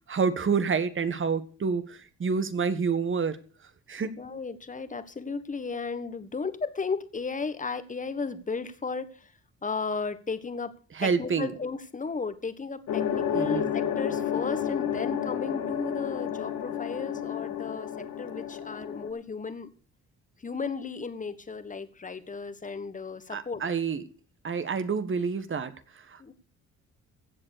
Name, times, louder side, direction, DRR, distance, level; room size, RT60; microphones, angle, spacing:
voice 1, 0.1-3.4 3.9-4.1 10.9-11.5 13.3-13.7 23.3-24.0 24.4-26.3, right 5 dB, 40° right, 11 dB, 1.7 m, -28 dB
voice 2, 4.2-9.3 9.6-10.7 11.0-17.9 18.2-19.7 20.4-23.6 26.2-26.3, left 4 dB, 25° left, 12 dB, 1.5 m, -34 dB
sound 1, 12.9-19.1, left 9 dB, 85° left, 2.6 m, -31 dB
16.0 x 7.7 x 6.8 m, 0.40 s
cardioid pair, 90°, 30 cm